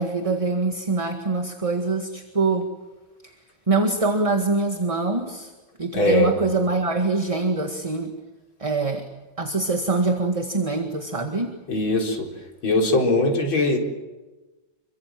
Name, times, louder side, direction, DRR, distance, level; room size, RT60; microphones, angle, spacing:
voice 1, 0.0-2.7 3.2-3.3 3.7-5.5 5.8-8.1 8.6-9.1 9.4-11.6, right 3 dB, 15° right, 5 dB, 1.7 m, -24 dB
voice 2, 5.9-6.3 11.7-12.3 12.6-13.8, left 2 dB, 70° left, 1 dB, 5.0 m, -20 dB
28.0 x 24.0 x 7.7 m, 1.2 s
omnidirectional pair, 2.3 m